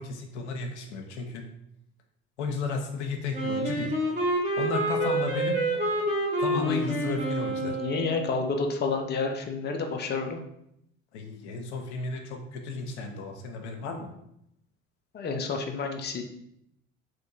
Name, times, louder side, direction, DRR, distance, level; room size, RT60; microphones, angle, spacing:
voice 1, 0.0-1.5 2.4-3.9 4.6-5.6 6.4-7.8 11.1-14.1, left 4 dB, 80° left, 3 dB, 0.6 m, -33 dB
Wind instrument woodwind instrument, 3.3-8.4, right 1 dB, 20° right, 1.4 m, -28 dB
voice 2, 6.5-7.1 7.6-10.4 15.1-16.2, left 4 dB, 30° left, 4 dB, 0.7 m, -30 dB
3.5 x 2.9 x 3.9 m, 0.77 s
hypercardioid pair, 65°, 34 cm